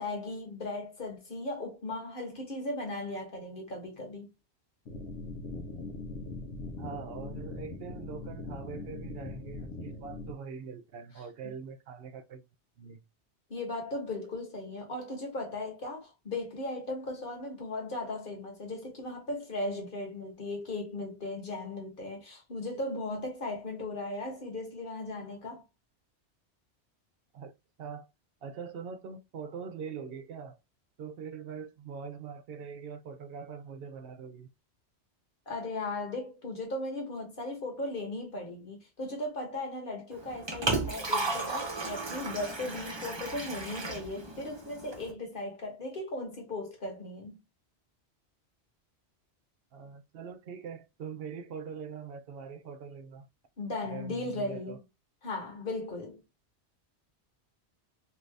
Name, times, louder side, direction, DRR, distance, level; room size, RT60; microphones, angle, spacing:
voice 1, 0.0-4.3 13.5-25.6 35.5-47.4 53.6-54.8 55.2-56.2, left 2 dB, 50° left, 1.3 m, -37 dB
sound 1, 4.9-10.3, left 3 dB, 85° left, 1.0 m, -41 dB
voice 2, 6.8-12.4 12.8-13.0 27.3-27.5 27.8-28.1 28.4-30.6 31.0-34.5 49.7-53.3 53.8-54.8, right 6 dB, 65° right, 0.7 m, -43 dB
Liquid, 40.1-45.1, right 3 dB, 30° right, 0.7 m, -34 dB
2.8 x 2.6 x 3.2 m
omnidirectional pair, 1.2 m